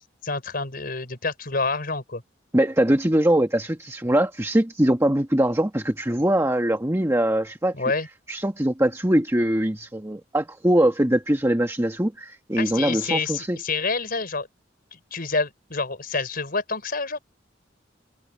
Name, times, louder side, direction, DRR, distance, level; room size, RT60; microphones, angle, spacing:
voice 1, 0.2-2.2 7.7-8.1 12.6-14.5 14.9-17.2, left 4 dB, 50° left, 5.0 m, -28 dB
voice 2, 2.5-7.7 8.3-13.6, right 1 dB, 15° right, 1.4 m, -22 dB
head